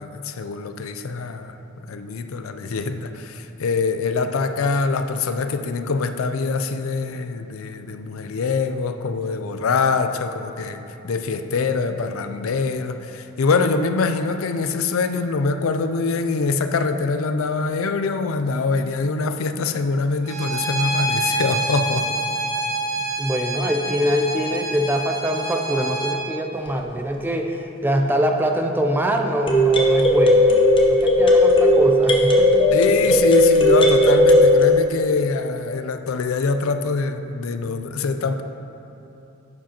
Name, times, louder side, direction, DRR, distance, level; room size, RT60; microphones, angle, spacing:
voice 1, 0.0-1.6 1.9-22.1 32.7-38.4, left 4 dB, 80° left, 8 dB, 0.4 m, -24 dB
Bowed string instrument, 20.2-26.2, right 2 dB, 45° right, 1.4 m, -26 dB
voice 2, 23.2-30.5 30.9-32.9, equal, 10° right, 3 dB, 0.4 m, -24 dB
sound 1, 26.7-26.8 29.5-34.7, left 1 dB, 25° left, 0.8 m, -15 dB
10.5 x 7.4 x 2.9 m, 3.0 s
head